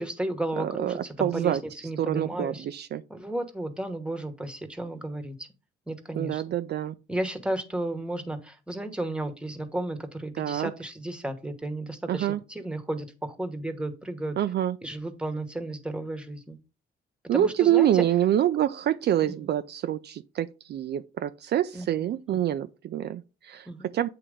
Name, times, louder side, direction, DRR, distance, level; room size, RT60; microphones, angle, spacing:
voice 1, 0.0-2.6 3.1-5.5 5.9-6.4 7.1-14.4 14.8-16.6 17.3-18.0 19.3-19.4 21.7-22.5 23.7-23.9, right 1 dB, 5° right, 1.1 m, -33 dB
voice 2, 0.6-0.9 1.2-1.6 2.0-3.0 6.2-7.0 10.4-10.7 12.1-12.4 14.4-14.8 17.3-23.7 23.9-24.1, right 11 dB, 55° right, 0.4 m, -26 dB
8.4 x 2.9 x 5.0 m
cardioid pair, 90°, 20 cm